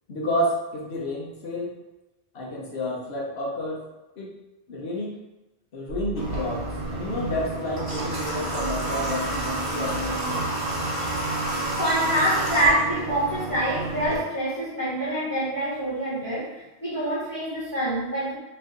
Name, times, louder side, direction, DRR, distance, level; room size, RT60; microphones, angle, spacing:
voice 1, 0.1-1.8 2.3-3.8 4.2-4.3 4.7-5.2 5.7-10.5, left 1 dB, 75° left, -2 dB, 1.1 m, -30 dB
sound 1, 5.9-11.4, left 1 dB, 55° left, 1.0 m, -40 dB
Water / Water tap faucet, 6.2-14.2, right 2 dB, 60° right, 1.4 m, -29 dB
voice 2, 11.8-18.3, right 1 dB, 20° left, -10 dB, 1.5 m, -26 dB
3.1 x 2.7 x 3.6 m, 1.0 s
omnidirectional pair, 1.1 m